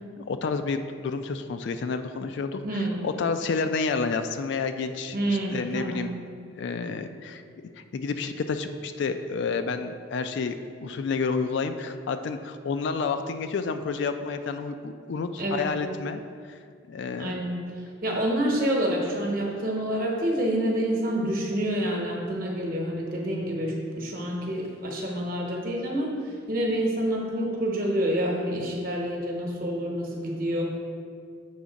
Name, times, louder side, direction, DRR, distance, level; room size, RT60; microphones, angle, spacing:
voice 1, 0.3-2.6 3.0-6.1 6.6-7.4 7.9-16.2 16.5-16.6 16.9-17.4, left 4 dB, 60° left, 8 dB, 0.3 m, -30 dB
voice 2, 2.6-3.0 5.1-6.1 15.4-15.7 17.2-17.6 18.0-30.6, right 1 dB, 45° right, -1 dB, 1.0 m, -28 dB
7.0 x 3.6 x 5.1 m, 2.2 s
head